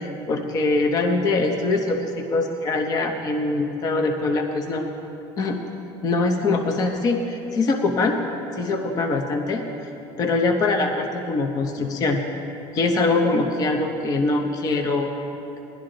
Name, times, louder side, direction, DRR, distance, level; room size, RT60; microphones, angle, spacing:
voice 1, 0.0-4.9 5.4-5.6 6.0-8.2 8.5-9.6 10.2-12.2 12.7-15.1, left 3 dB, 30° left, 4 dB, 0.7 m, -23 dB
16.0 x 11.5 x 3.8 m, 2.8 s
cardioid pair, 160°, 13 cm